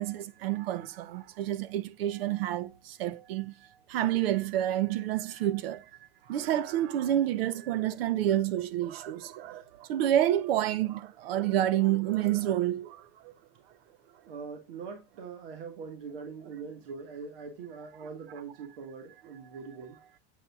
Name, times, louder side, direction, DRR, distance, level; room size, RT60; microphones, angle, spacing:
voice 1, 0.0-3.5 3.9-5.9 6.3-13.3, right 12 dB, 80° right, 0.8 m, -29 dB
voice 2, 14.3-20.0, right 5 dB, 65° right, 1.7 m, -42 dB
7.6 x 6.8 x 2.3 m
supercardioid pair, 175°, 30 cm